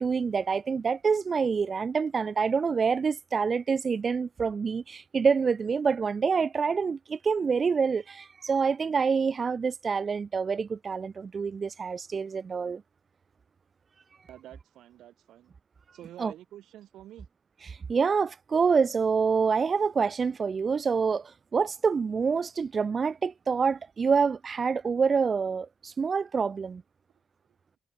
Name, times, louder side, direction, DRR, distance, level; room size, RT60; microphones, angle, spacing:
voice 1, 0.0-12.8 16.2-16.3 17.6-26.8, right 5 dB, 40° right, 1.0 m, -27 dB
voice 2, 14.3-15.5 15.9-17.3, right 12 dB, 80° right, 7.7 m, -48 dB
cardioid pair, 90°, 0 cm